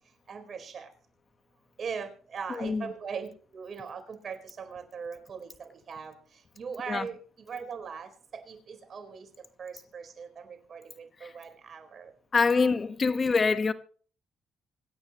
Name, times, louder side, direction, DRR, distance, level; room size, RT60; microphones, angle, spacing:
voice 1, 0.3-0.9 1.8-3.3 3.5-6.1 6.6-7.2 7.5-8.1 8.5-9.3 9.6-12.1, right 6 dB, 50° right, 4.4 m, -40 dB
voice 2, 2.5-2.9 6.9-7.1 11.2-11.3 12.3-13.7, left 4 dB, 35° left, 1.4 m, -25 dB
26.5 x 8.9 x 3.1 m
cardioid pair, 90°, 0 cm